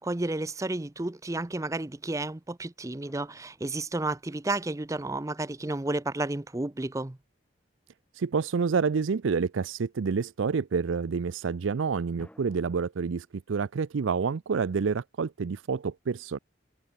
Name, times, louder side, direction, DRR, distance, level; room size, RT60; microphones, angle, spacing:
voice 1, 0.0-7.2, right 2 dB, 15° right, 0.5 m, -32 dB
sound 1, 3.0-5.1 12.2-12.8, equal, 5° left, 5.5 m, -57 dB
voice 2, 8.1-16.4, right 5 dB, 85° right, 0.5 m, -28 dB
head